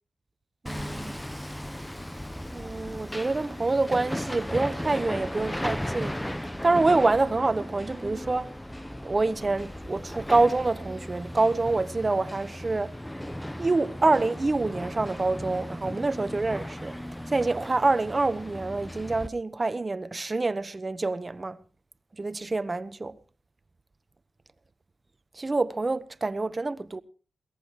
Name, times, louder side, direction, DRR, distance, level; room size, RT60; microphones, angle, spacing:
voice 1, 0.6-1.2 2.5-6.2 6.6-8.5 9.0-12.9 13.6-16.9 17.3-21.6 22.2-23.2 25.4-27.0, right 3 dB, 35° right, 1.1 m, -26 dB
Hammer, 0.7-19.3, equal, 10° left, 0.8 m, -36 dB
23.0 x 18.0 x 3.1 m
cardioid pair, 65°, 0 cm